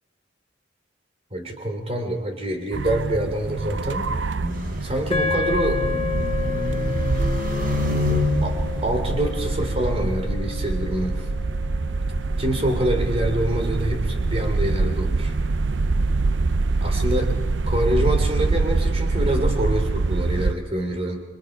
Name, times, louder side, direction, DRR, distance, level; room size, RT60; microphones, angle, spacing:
voice 1, 1.3-4.1 4.8-5.9 8.4-11.3 12.4-15.4 16.8-17.4 17.7-21.2, right 1 dB, 35° right, 4 dB, 3.2 m, -26 dB
sound 1, 2.7-20.5, right 3 dB, 80° right, 0.6 m, -25 dB
sound 2, 4.4-9.9, left 1 dB, 50° right, 3.7 m, -28 dB
sound 3, 5.1-13.5, left 6 dB, 30° left, 1.9 m, -31 dB
27.5 x 24.0 x 5.1 m, 1.3 s
head